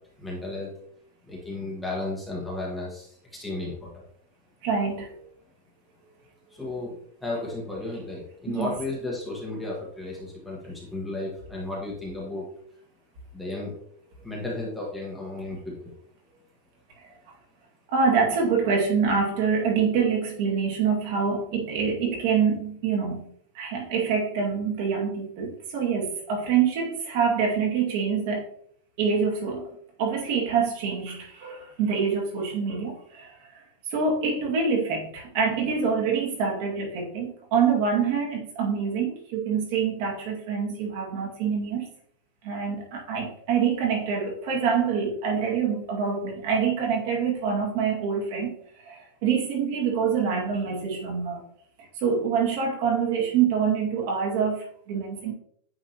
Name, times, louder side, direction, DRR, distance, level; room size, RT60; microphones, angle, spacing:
voice 1, 0.2-0.7 1.3-3.9 6.5-6.9 7.2-12.5 13.3-13.7 14.2-15.9, left 2 dB, 5° left, -4 dB, 1.4 m, -34 dB
voice 2, 4.6-5.1 8.5-8.7 17.0-17.1 17.9-23.3 23.5-28.5 29.0-29.7 30.0-33.6 33.9-41.8 42.4-51.4 52.0-55.3, right 6 dB, 55° right, -1 dB, 2.0 m, -26 dB
8.9 x 3.7 x 2.9 m, 0.66 s
supercardioid pair, 160°, 0 cm